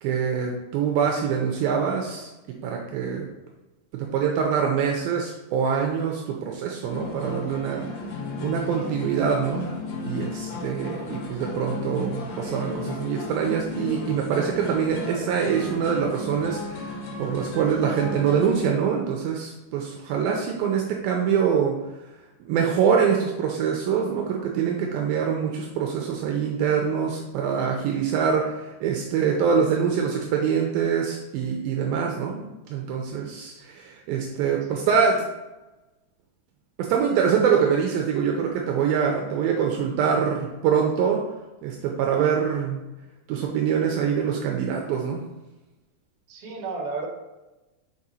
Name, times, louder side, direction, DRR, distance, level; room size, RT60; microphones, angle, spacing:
voice 1, 0.0-2.3 2.6-3.3 3.9-7.9 8.4-21.8 22.4-35.2 36.8-41.2 41.6-42.8 43.3-45.3, right 7 dB, 85° right, 1 dB, 2.2 m, -24 dB
sound 1, 6.8-18.6, left 3 dB, 85° left, 3.6 m, -34 dB
voice 2, 46.3-47.1, right 4 dB, 55° right, -2 dB, 1.7 m, -33 dB
6.6 x 4.9 x 4.2 m, 1.0 s
omnidirectional pair, 4.7 m